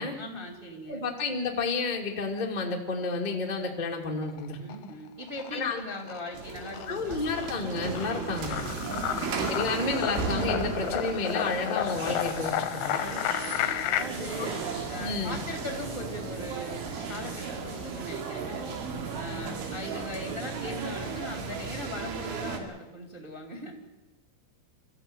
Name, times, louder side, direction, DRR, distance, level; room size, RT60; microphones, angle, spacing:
voice 1, 0.2-1.0 4.6-7.2 8.1-8.4 8.8-9.3 12.9-14.6 14.9-18.6 19.1-23.7, left 1 dB, 15° right, 2 dB, 2.3 m, -40 dB
voice 2, 0.9-4.6 5.5-5.8 6.9-8.6 9.5-13.0 14.4-14.5 15.0-15.4, left 3 dB, 30° left, 0 dB, 0.7 m, -31 dB
sound 1, 4.1-4.9 5.2-14.0, left 13 dB, 75° left, 2.5 m, -32 dB
sound 2, 6.3-22.6, right 5 dB, 80° right, 4.7 m, -35 dB
sound 3, 11.9-21.9, right 2 dB, 60° right, 7.9 m, -47 dB
24.5 x 14.5 x 9.0 m, 1.0 s
omnidirectional pair, 5.5 m